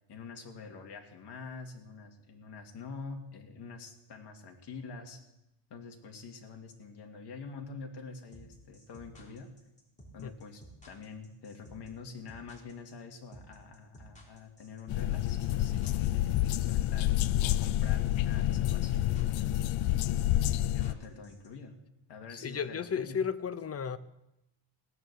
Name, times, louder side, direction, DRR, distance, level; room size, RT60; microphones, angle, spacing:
voice 1, 0.1-5.2 5.7-9.5 10.1-17.1 17.4-19.7 20.5-21.8 22.1-23.2, left 4 dB, 60° left, 3 dB, 2.4 m, -46 dB
sound 1, 8.3-21.5, right 1 dB, 15° left, 3.5 m, -53 dB
sound 2, 14.9-20.9, left 14 dB, 90° left, 0.6 m, -28 dB
voice 2, 22.3-24.0, left 7 dB, 30° left, 13 dB, 0.7 m, -34 dB
16.5 x 9.8 x 7.0 m, 0.89 s
cardioid pair, 135°, 45 cm